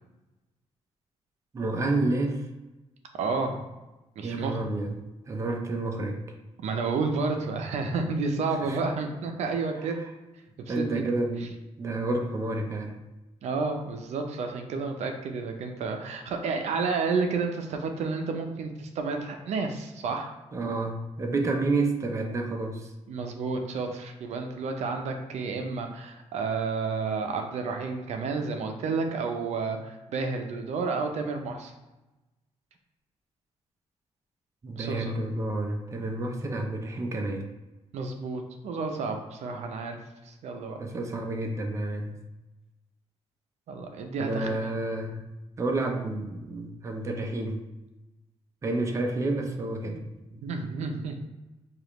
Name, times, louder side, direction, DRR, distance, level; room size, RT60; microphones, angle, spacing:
voice 1, 1.5-2.5 4.2-6.2 8.6-8.8 10.7-13.0 20.5-22.9 34.6-37.4 40.8-42.2 44.2-45.2 45.6-47.6 48.6-50.0, right 2 dB, 25° right, 3 dB, 0.5 m, -30 dB
voice 2, 3.1-3.6 4.2-4.6 6.6-10.0 10.7-11.0 13.4-20.4 23.1-31.7 34.8-35.1 37.9-40.0 40.2-40.8 43.7-44.7 49.9-50.0 50.4-51.2, right 4 dB, 75° right, 4 dB, 0.5 m, -31 dB
4.9 x 2.4 x 3.0 m, 1.0 s
cardioid pair, 145°, 11 cm